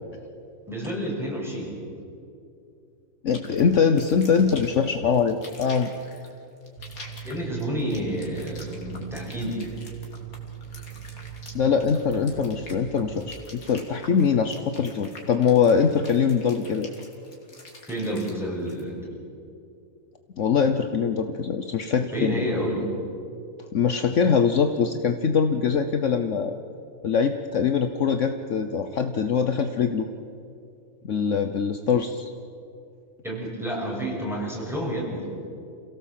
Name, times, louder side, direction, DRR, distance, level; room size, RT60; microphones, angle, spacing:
voice 1, 0.7-1.8 7.2-9.7 17.9-19.1 22.1-22.9 33.2-35.2, equal, ahead, -3 dB, 6.3 m, -29 dB
voice 2, 3.2-5.9 11.5-16.9 20.4-22.4 23.7-26.5 27.0-30.1 31.0-32.3, left 6 dB, 60° left, 7 dB, 1.2 m, -23 dB
sound 1, 3.3-18.8, left 2 dB, 80° left, 3.3 m, -46 dB
sound 2, 6.8-13.3, right 9 dB, 60° right, 1.7 m, -40 dB
28.0 x 17.0 x 7.6 m, 2.5 s
omnidirectional pair, 1.5 m